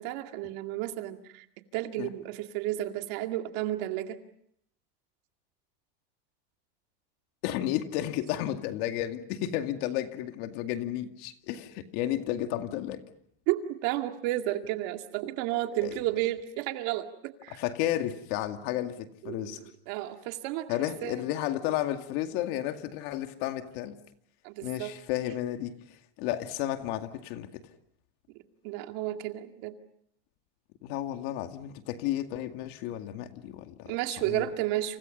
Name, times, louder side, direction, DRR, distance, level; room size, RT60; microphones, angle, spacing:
voice 1, 0.0-1.4 1.7-4.2 13.5-17.6 19.2-20.8 21.0-21.1 24.4-24.9 28.6-29.7 33.9-35.0, right 14 dB, 55° right, 6 dB, 2.2 m, -32 dB
voice 2, 7.4-13.0 15.8-15.9 17.5-19.6 20.7-24.0 24.6-27.6 30.8-33.9 34.2-34.5, left 12 dB, 55° left, 7 dB, 2.3 m, -32 dB
29.5 x 28.5 x 5.4 m, 0.68 s
supercardioid pair, 150°, 29 cm